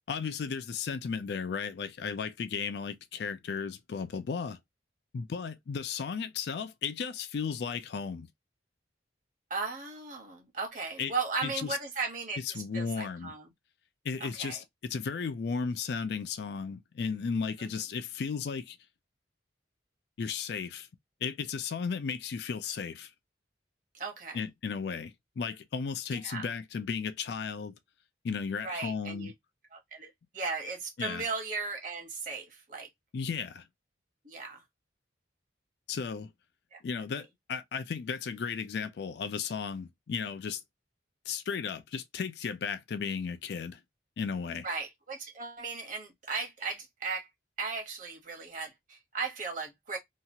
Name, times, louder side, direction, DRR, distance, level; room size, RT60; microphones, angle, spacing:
voice 1, 0.1-4.6 5.1-8.3 11.0-11.1 11.4-11.8 12.4-13.3 14.0-18.8 20.2-20.9 21.2-23.1 24.3-27.7 28.2-29.3 31.0-31.3 33.1-33.7 35.9-36.3 36.8-40.6 41.3-43.8 44.2-44.7, left 5 dB, 60° left, 0.3 m, -35 dB
voice 2, 9.5-12.4 12.7-13.5 14.2-14.6 17.6-17.7 23.9-24.4 26.1-26.5 28.6-29.3 29.7-32.9 34.2-34.6 36.7-36.8 44.6-47.3 47.6-50.0, right 4 dB, 45° right, 1.0 m, -36 dB
2.8 x 2.4 x 2.7 m
head